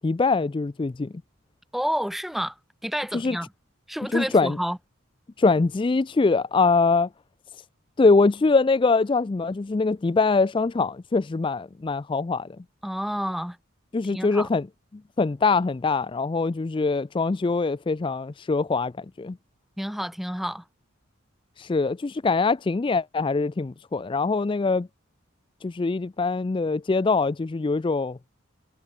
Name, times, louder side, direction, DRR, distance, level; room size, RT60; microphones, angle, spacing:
voice 1, 0.0-1.1 3.1-3.4 4.1-4.6 5.4-7.1 8.0-12.5 13.9-14.7 15.2-19.4 21.6-24.9 25.6-28.2, left 3 dB, 25° left, 0.3 m, -23 dB
voice 2, 1.7-2.6 2.8-3.5 3.9-4.8 12.8-13.6 14.0-14.5 19.8-20.6, equal, ahead, 0.7 m, -29 dB
head